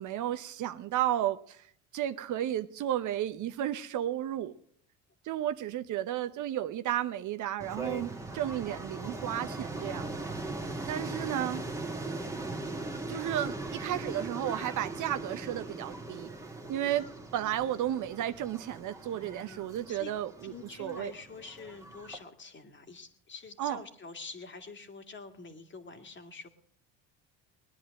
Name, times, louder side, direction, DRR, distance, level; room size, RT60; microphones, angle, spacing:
voice 1, 0.0-1.6 1.9-4.5 5.2-10.1 10.9-11.7 13.1-16.3 16.7-20.5 20.8-21.1 23.6-23.8, right 12 dB, 55° right, 0.9 m, -33 dB
sound 1, 7.6-22.2, right 2 dB, 10° right, 1.8 m, -40 dB
voice 2, 19.2-20.1 20.4-26.5, left 4 dB, 30° left, 2.2 m, -46 dB
20.5 x 10.0 x 6.5 m
supercardioid pair, 80°, 37 cm